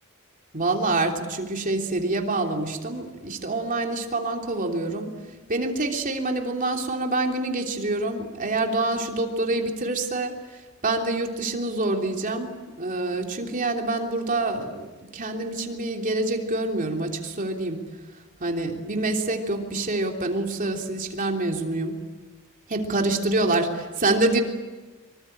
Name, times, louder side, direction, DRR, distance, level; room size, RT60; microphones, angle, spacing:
voice 1, 0.5-5.1 5.5-10.3 10.8-14.9 15.1-17.8 18.4-21.9 22.7-24.4, right 2 dB, 40° right, 3 dB, 3.2 m, -26 dB
25.0 x 24.0 x 8.9 m, 1.2 s
head